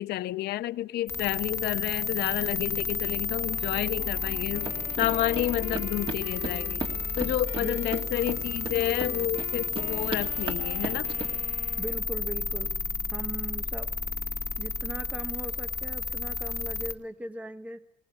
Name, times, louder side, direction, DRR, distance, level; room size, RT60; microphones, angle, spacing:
voice 1, 0.0-6.8 7.2-11.1, left 14 dB, 75° left, 0.8 m, -30 dB
sound 1, 1.1-16.9, left 4 dB, 15° left, 1.1 m, -32 dB
Wind instrument woodwind instrument, 3.4-12.1, left 7 dB, 35° left, 0.8 m, -45 dB
sound 2, 4.6-11.3, right 3 dB, 30° right, 2.5 m, -37 dB
voice 2, 11.8-12.8 13.1-13.9 14.6-17.8, right 1 dB, 10° right, 0.9 m, -39 dB
20.0 x 19.0 x 9.0 m
cardioid pair, 110°, 17 cm